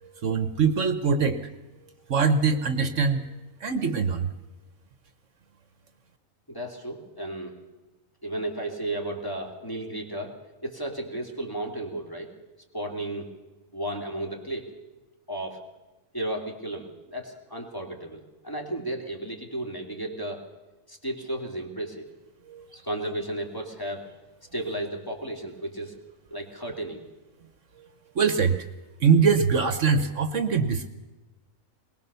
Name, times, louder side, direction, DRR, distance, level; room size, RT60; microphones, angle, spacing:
voice 1, 0.2-1.4 2.1-3.3 3.6-4.3 22.5-22.6 28.1-28.7 29.0-30.9, right 5 dB, 65° right, 10 dB, 1.3 m, -23 dB
voice 2, 6.5-7.6 8.2-12.3 12.7-13.3 13.7-14.8 15.3-15.6 16.1-20.4 20.9-22.1 22.7-24.1 24.5-26.0 26.3-27.0, right 1 dB, 15° left, 1 dB, 2.8 m, -34 dB
21.5 x 20.0 x 6.9 m, 1.1 s
omnidirectional pair, 1.4 m